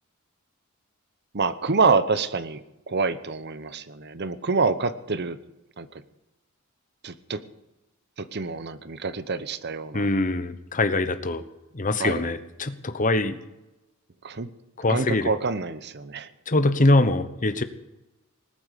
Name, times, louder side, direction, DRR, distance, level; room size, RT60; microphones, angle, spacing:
voice 1, 1.3-2.6 2.9-5.4 5.8-6.0 7.0-7.4 8.2-10.1 12.0-12.3 14.2-14.5 14.9-16.3, right 4 dB, 50° right, 14 dB, 0.9 m, -26 dB
voice 2, 9.9-11.4 11.7-13.4 14.8-15.3 16.5-17.6, left 2 dB, 35° left, 11 dB, 1.0 m, -23 dB
19.5 x 8.8 x 8.3 m, 0.98 s
head